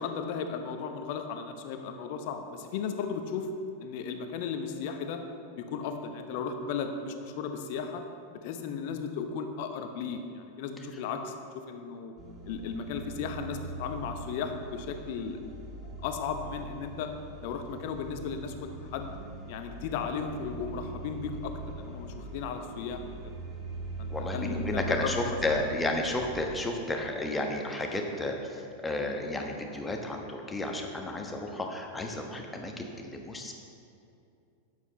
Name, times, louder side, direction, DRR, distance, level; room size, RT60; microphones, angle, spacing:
voice 1, 0.0-3.5 3.8-5.2 5.5-8.0 8.4-12.1 12.5-15.4 16.0-17.1 17.4-19.1 19.5-23.3 24.0-25.6 25.9-26.0, left 6 dB, 50° left, 7 dB, 0.8 m, -35 dB
sound 1, 12.2-26.4, right 2 dB, 25° right, 2.1 m, -41 dB
voice 2, 24.1-33.5, left 1 dB, 10° left, 2 dB, 1.2 m, -32 dB
12.0 x 9.4 x 3.1 m, 2.6 s
figure-of-eight pair, 90°, 0 cm